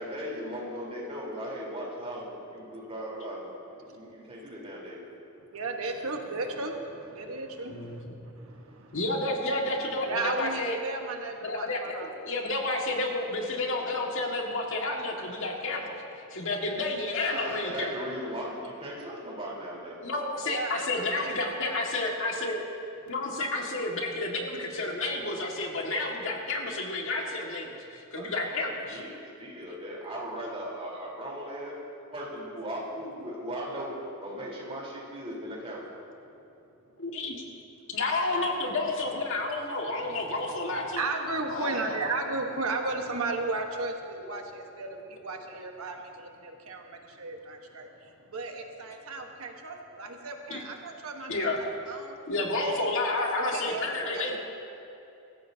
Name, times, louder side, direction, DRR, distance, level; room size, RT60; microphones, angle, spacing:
voice 1, 0.0-5.0 17.2-20.0 28.1-28.3 28.6-29.1 29.4-31.8 32.1-34.0 34.2-35.8, equal, 30° right, -4 dB, 3.9 m, -38 dB
voice 2, 5.5-9.0 10.0-12.1 12.7-13.0 20.5-22.2 38.3-38.4 40.0-40.3 40.8-52.2 52.7-53.0 53.5-54.4, right 3 dB, 75° right, 3 dB, 1.3 m, -35 dB
voice 3, 7.7-8.2 8.9-10.8 11.4-16.0 16.3-17.9 20.0-22.6 23.1-29.0 37.0-37.4 37.9-41.0 41.5-42.0 50.5-50.6 51.3-51.6 52.3-54.4, left 2 dB, 65° left, 0 dB, 1.9 m, -30 dB
24.0 x 14.5 x 2.8 m, 2.8 s
head